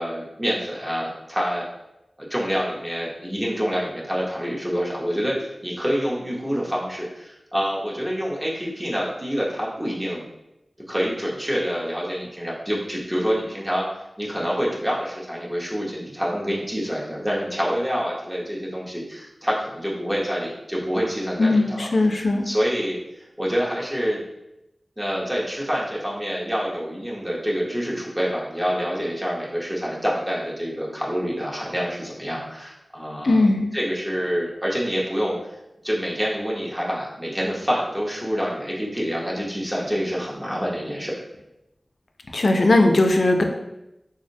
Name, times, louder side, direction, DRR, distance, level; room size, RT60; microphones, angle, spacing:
voice 1, 0.0-1.7 2.2-10.2 10.9-13.9 14.2-21.9 22.4-23.0 23.4-24.2 25.0-33.5 33.7-35.4 35.8-41.2, equal, 20° right, -4 dB, 0.6 m, -27 dB
voice 2, 21.4-22.4 33.2-33.7 42.3-43.4, left 2 dB, 70° left, 3 dB, 0.3 m, -18 dB
3.7 x 2.0 x 2.6 m, 0.90 s
wide cardioid pair, 70°, 0 cm